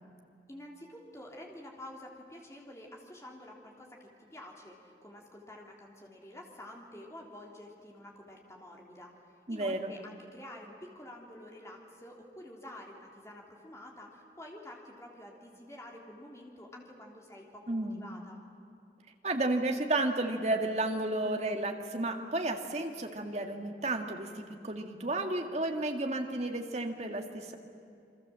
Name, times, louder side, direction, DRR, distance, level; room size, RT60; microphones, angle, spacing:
voice 1, 0.5-9.2 9.5-18.4, left 1 dB, 15° left, 0 dB, 3.2 m, -49 dB
voice 2, 9.5-9.9 17.7-18.1 19.2-27.5, right 2 dB, 40° right, 4 dB, 2.0 m, -32 dB
28.0 x 23.5 x 7.6 m, 2.6 s
head